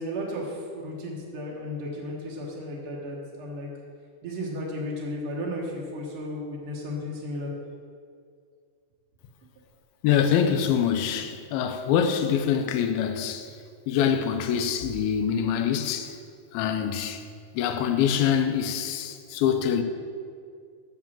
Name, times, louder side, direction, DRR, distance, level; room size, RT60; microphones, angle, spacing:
voice 1, 0.0-3.7 4.2-7.5, left 1 dB, 60° right, 1.5 m, -34 dB
voice 2, 10.0-13.5 13.9-16.2 16.5-17.2 17.5-19.8, left 8 dB, 90° left, 2.5 m, -25 dB
8.2 x 7.4 x 7.4 m
omnidirectional pair, 4.3 m